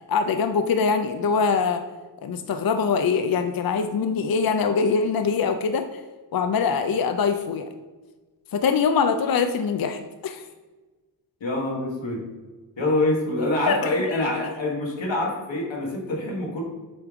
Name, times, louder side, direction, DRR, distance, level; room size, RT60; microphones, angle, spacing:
voice 1, 0.1-1.8 2.2-6.0 6.3-7.7 8.5-10.4 13.7-13.8 14.1-14.3, left 5 dB, 55° left, 7 dB, 0.5 m, -23 dB
voice 2, 11.4-12.3 12.8-16.6, left 1 dB, 90° left, -2 dB, 1.6 m, -25 dB
7.7 x 3.4 x 3.6 m, 1.3 s
cardioid pair, 50°, 44 cm